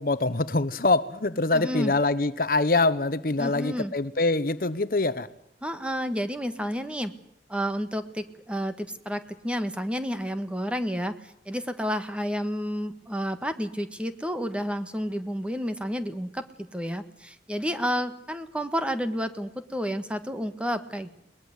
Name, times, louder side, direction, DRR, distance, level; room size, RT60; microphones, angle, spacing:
voice 1, 0.0-5.3, left 2 dB, 55° left, 14 dB, 1.1 m, -24 dB
voice 2, 1.5-1.9 3.4-3.9 5.6-7.1 7.5-21.1, equal, 5° right, 9 dB, 1.6 m, -30 dB
22.0 x 20.5 x 8.1 m, 0.76 s
head